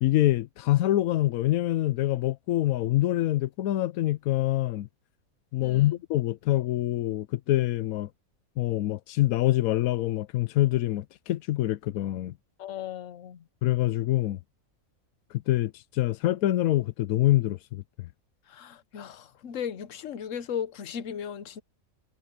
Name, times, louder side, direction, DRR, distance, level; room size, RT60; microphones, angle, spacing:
voice 1, 0.0-4.9 5.5-8.1 8.6-12.3 13.6-14.4 15.5-18.1, left 15 dB, 90° left, 1.0 m, -25 dB
voice 2, 5.6-6.0 12.6-13.4 18.5-21.6, left 8 dB, 65° left, 1.3 m, -36 dB
omnidirectional pair, 1.4 m